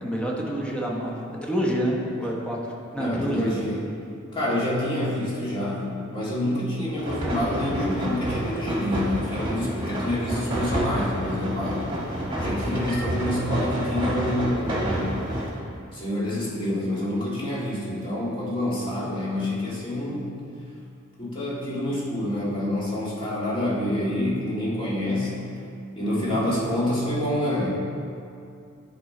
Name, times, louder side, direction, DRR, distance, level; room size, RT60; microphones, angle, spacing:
voice 1, 0.0-3.6 10.3-10.6 26.3-26.6, equal, 5° left, -2 dB, 0.9 m, -28 dB
voice 2, 3.0-3.8 4.3-11.8 12.4-15.2 15.9-20.4 21.2-25.3 26.0-27.7, left 1 dB, 25° left, -7 dB, 1.9 m, -27 dB
sound 1, 7.0-15.5, equal, 25° right, 1.4 m, -29 dB
10.0 x 4.3 x 3.8 m, 2.5 s
head